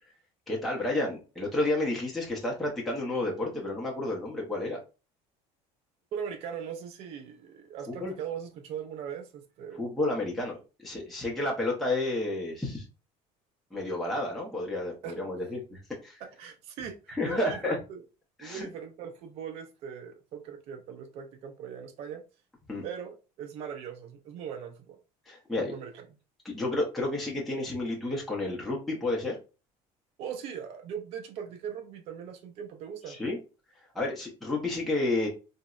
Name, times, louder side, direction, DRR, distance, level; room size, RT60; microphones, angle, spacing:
voice 1, 0.5-4.8 8.0-8.1 9.8-10.6 10.8-12.8 13.7-16.2 17.1-17.8 18.4-18.7 22.7-22.8 25.3-25.7 26.4-29.4 33.1-33.4 33.9-35.3, left 2 dB, ahead, 0.6 m, -31 dB
voice 2, 6.1-9.9 15.0-15.1 16.2-18.0 18.4-22.2 22.8-25.0 25.6-26.0 30.2-33.2, right 8 dB, 50° right, 0.4 m, -40 dB
3.8 x 2.0 x 2.3 m
cardioid pair, 155°, 13 cm